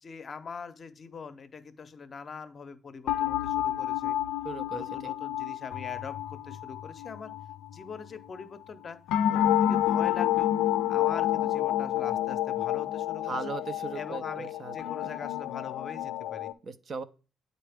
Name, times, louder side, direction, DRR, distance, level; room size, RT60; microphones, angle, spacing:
voice 1, 0.0-4.2 4.7-7.3 7.7-9.0 9.3-10.5 10.9-13.5 13.9-14.5 14.7-16.5, left 5 dB, 45° left, 10 dB, 0.6 m, -43 dB
sound 1, 3.1-8.4 9.1-16.5, left 12 dB, 85° left, 0.3 m, -29 dB
voice 2, 4.4-5.1 13.2-14.8 15.0-15.1 16.6-17.0, right 4 dB, 50° right, 11 dB, 0.5 m, -38 dB
8.5 x 4.0 x 3.4 m, 0.35 s
cardioid pair, 90°, 0 cm